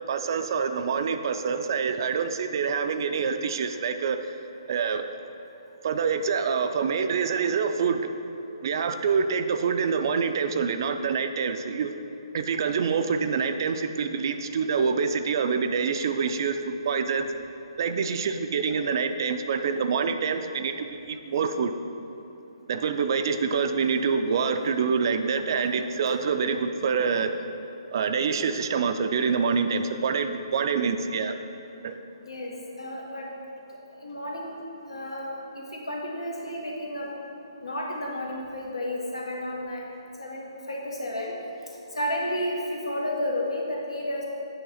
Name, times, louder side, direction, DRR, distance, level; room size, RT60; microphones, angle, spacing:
voice 1, 0.1-4.2 4.7-5.1 5.8-8.1 8.6-11.9 12.3-17.3 17.8-20.7 21.1-21.7 22.7-27.3 27.9-31.3 31.8-31.9, right 5 dB, 50° right, 8 dB, 0.4 m, -26 dB
voice 2, 32.2-33.3 34.0-34.6 34.9-37.1 37.6-39.8 40.2-41.3 41.9-44.2, left 1 dB, 75° left, -2 dB, 1.4 m, -32 dB
8.5 x 3.2 x 5.7 m, 2.9 s
figure-of-eight pair, 135°, 3 cm